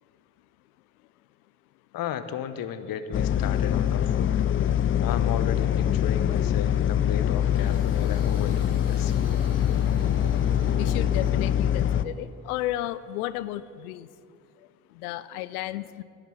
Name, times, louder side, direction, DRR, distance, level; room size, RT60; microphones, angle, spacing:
voice 1, 1.9-4.4 5.0-9.3, left 9 dB, 50° left, 12 dB, 0.9 m, -34 dB
sound 1, 3.1-12.0, left 10 dB, 30° left, 0.5 m, -24 dB
sound 2, 7.4-12.5, right 3 dB, 80° right, 1.7 m, -43 dB
voice 2, 10.7-14.1 14.9-16.0, left 14 dB, 80° left, 17 dB, 0.5 m, -33 dB
11.5 x 7.4 x 9.0 m, 2.3 s
hypercardioid pair, 55°, 44 cm